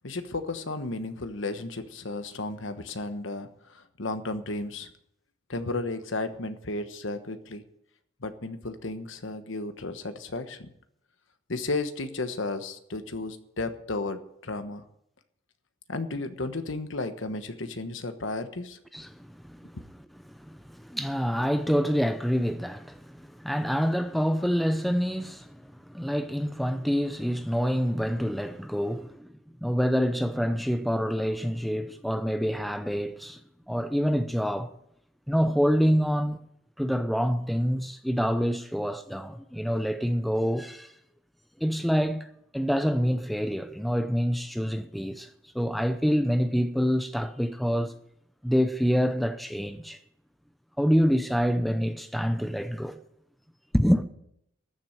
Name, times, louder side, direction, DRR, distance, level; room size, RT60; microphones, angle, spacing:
voice 1, 0.0-4.9 5.5-7.6 8.2-10.7 11.5-14.8 15.9-18.8, left 2 dB, 65° left, 1.2 m, -33 dB
voice 2, 18.9-19.8 20.3-29.3 29.6-33.4 33.7-34.7 35.3-36.4 36.8-40.9 41.6-42.3 42.5-47.9 48.4-50.0 50.8-53.0 53.7-54.0, equal, ahead, 0.6 m, -26 dB
14.0 x 7.6 x 9.0 m
head